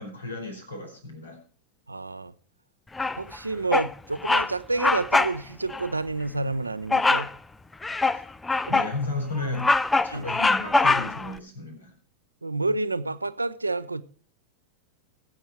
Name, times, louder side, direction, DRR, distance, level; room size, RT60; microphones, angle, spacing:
voice 1, 0.0-1.4 8.1-8.2 8.7-9.7 10.0-11.9, left 2 dB, 80° left, 5.0 m, -33 dB
voice 2, 1.9-2.3 3.2-7.3 10.1-10.3 12.4-14.0, right 2 dB, 80° right, 0.7 m, -29 dB
Bird vocalization bird call bird song, 3.0-3.4 3.7-3.9 4.2-4.5 4.8-5.4 5.7-5.9 6.9-7.3 7.8-8.9 9.4-11.3, left 3 dB, 10° left, 0.5 m, -23 dB
21.0 x 9.0 x 3.1 m
figure-of-eight pair, 90°, 0 cm